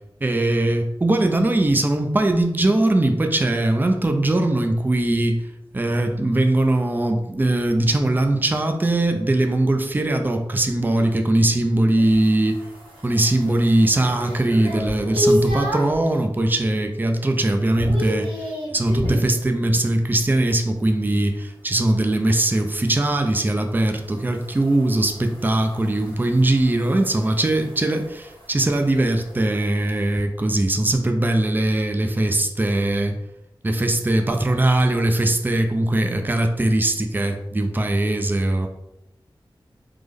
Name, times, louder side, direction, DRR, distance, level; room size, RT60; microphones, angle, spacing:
voice 1, 0.2-5.4 5.7-12.6 13.0-18.5 18.7-33.2 33.6-38.7, right 1 dB, 20° right, 5 dB, 0.4 m, -20 dB
sound 1, 12.0-16.0 16.5-17.0 17.2-19.3 21.8-30.2, equal, 85° right, 1.1 m, -31 dB
3.4 x 2.0 x 3.5 m, 0.90 s
wide cardioid pair, 55°, 9 cm